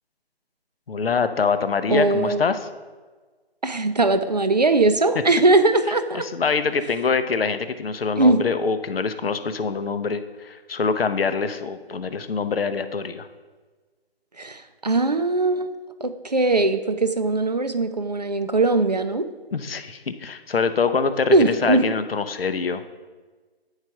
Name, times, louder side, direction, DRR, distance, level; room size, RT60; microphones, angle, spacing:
voice 1, 0.9-2.7 6.1-13.3 19.5-22.8, left 5 dB, 65° left, 11 dB, 0.7 m, -24 dB
voice 2, 1.9-2.4 3.6-6.3 8.2-8.4 14.4-15.7 16.0-19.3 21.3-21.8, right 2 dB, 40° right, 10 dB, 0.5 m, -20 dB
9.0 x 4.8 x 5.7 m, 1.4 s
figure-of-eight pair, 165°, 31 cm